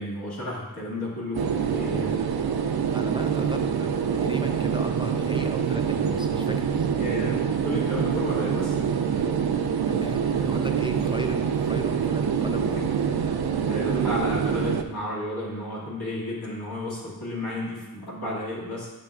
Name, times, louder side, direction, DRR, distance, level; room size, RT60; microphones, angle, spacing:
voice 1, 0.0-2.2 7.0-7.4 7.6-8.8 10.3-10.5 12.4-12.9 13.6-18.9, left 1 dB, 90° left, -6 dB, 2.0 m, -32 dB
sound 1, 1.3-14.8, right 7 dB, 85° right, 0.5 m, -25 dB
voice 2, 2.9-6.9 9.0-9.3 9.6-12.8 13.2-13.4, right 2 dB, 15° right, 4 dB, 0.4 m, -36 dB
8.9 x 6.0 x 2.4 m, 1.1 s
wide cardioid pair, 80°, 37 cm